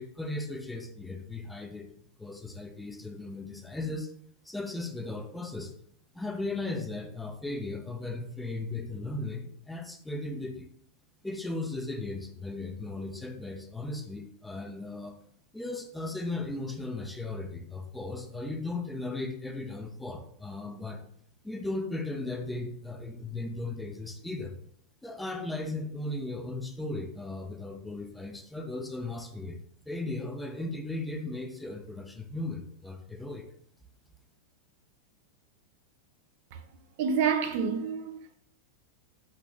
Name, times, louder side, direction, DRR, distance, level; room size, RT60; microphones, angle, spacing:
voice 1, 0.0-1.9 2.2-4.1 4.4-5.7 6.1-10.7 11.2-15.2 15.5-21.0 21.4-24.6 25.0-29.6 29.9-33.5, left 2 dB, 5° left, 0.5 m, -36 dB
voice 2, 37.0-38.4, right 6 dB, 50° right, 0.4 m, -28 dB
3.8 x 2.8 x 3.2 m
figure-of-eight pair, 90°, 0 cm